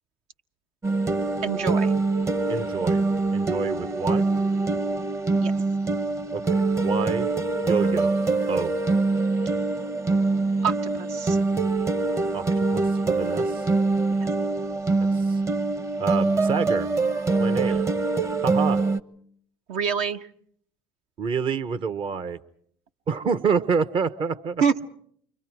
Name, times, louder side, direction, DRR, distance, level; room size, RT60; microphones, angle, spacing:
sound 1, 0.8-19.0, right 3 dB, 25° right, 0.9 m, -24 dB
voice 1, 1.4-2.0 5.4-5.5 10.6-11.4 14.2-14.3 17.7-17.8 19.7-20.3 24.6-24.9, right 6 dB, 70° right, 5 dB, 1.2 m, -26 dB
voice 2, 2.5-4.3 6.3-7.3 7.6-8.1 8.5-8.7 12.3-13.7 15.0-15.4 16.0-16.9 17.4-17.8 18.4-18.8 21.2-22.4 23.1-24.6, right 5 dB, 45° right, 13 dB, 1.0 m, -28 dB
29.0 x 25.0 x 4.7 m, 0.63 s
hypercardioid pair, 75°, 12 cm